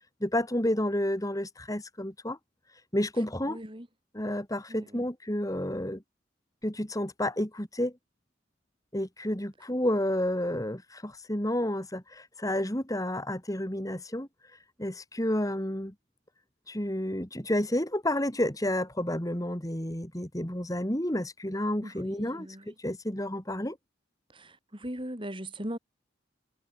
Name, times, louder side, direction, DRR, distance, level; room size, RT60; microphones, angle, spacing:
voice 1, 0.2-2.4 2.9-3.6 4.1-6.0 6.6-7.9 8.9-14.3 14.8-15.9 16.7-23.8, left 1 dB, 20° left, 3.1 m, -30 dB
voice 2, 3.5-3.9 4.7-4.9 21.8-22.6 24.3-25.8, right 1 dB, 25° right, 5.3 m, -39 dB
head